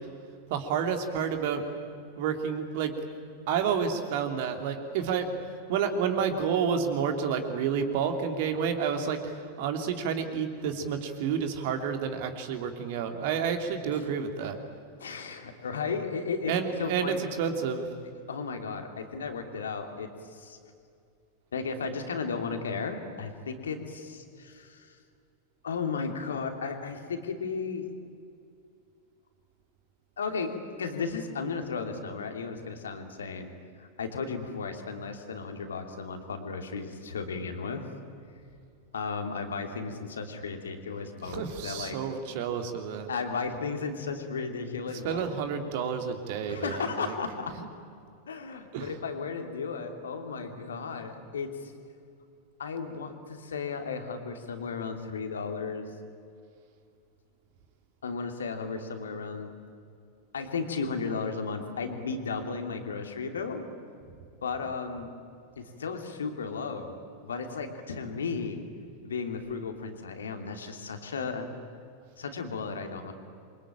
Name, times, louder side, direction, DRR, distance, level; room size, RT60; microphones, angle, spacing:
voice 1, 0.5-1.7 2.2-3.0 3.5-5.3 5.7-14.6 16.5-17.9 41.2-43.1 44.9-47.1 47.6-47.7 48.7-49.0 64.6-64.7, right 7 dB, 50° right, 6 dB, 2.9 m, -30 dB
voice 2, 15.0-17.2 18.3-20.6 21.5-25.0 25.6-27.9 30.2-33.5 33.8-37.9 38.9-42.0 43.1-45.2 46.5-47.5 48.3-51.7 52.6-55.9 58.0-59.5 60.3-63.6 64.4-65.1 65.6-66.9 67.2-68.6 69.0-71.5 72.2-73.1, left 5 dB, 65° left, 5 dB, 3.0 m, -34 dB
27.5 x 24.0 x 9.0 m, 2.5 s
figure-of-eight pair, 90°, 0 cm